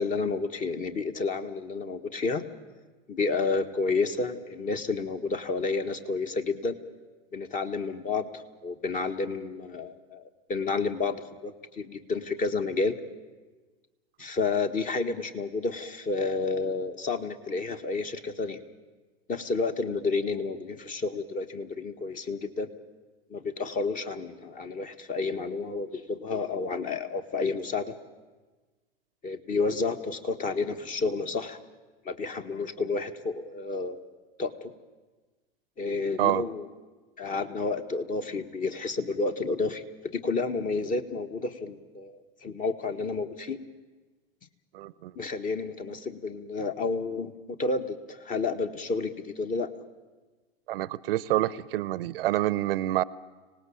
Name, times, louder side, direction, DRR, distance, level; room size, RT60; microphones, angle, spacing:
voice 1, 0.0-2.4 3.1-6.7 7.3-11.2 11.4-13.0 14.2-18.6 19.3-22.7 23.3-27.9 29.2-31.6 32.0-34.0 34.4-34.7 35.8-36.7 37.2-43.6 45.1-49.7, left 4 dB, 25° left, 8 dB, 1.6 m, -30 dB
voice 2, 44.7-45.1 50.7-53.0, right 14 dB, 65° right, 19 dB, 0.8 m, -27 dB
25.5 x 18.5 x 8.7 m, 1.3 s
hypercardioid pair, 115°, 31 cm